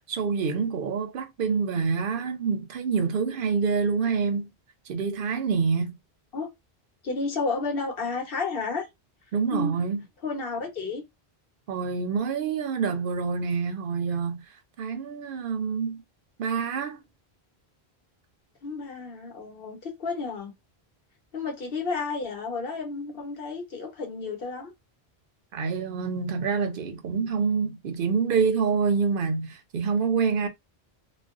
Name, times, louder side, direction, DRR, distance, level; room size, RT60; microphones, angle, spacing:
voice 1, 0.1-4.5 4.9-6.0 9.3-10.0 11.7-14.4 14.8-16.0 16.4-17.0 25.5-30.5, right 5 dB, 65° right, 0.7 m, -26 dB
voice 2, 7.0-8.9 9.5-9.8 10.2-11.0 18.6-20.5 21.3-24.7, left 4 dB, 60° left, 1.1 m, -31 dB
2.4 x 2.2 x 2.3 m
omnidirectional pair, 1.1 m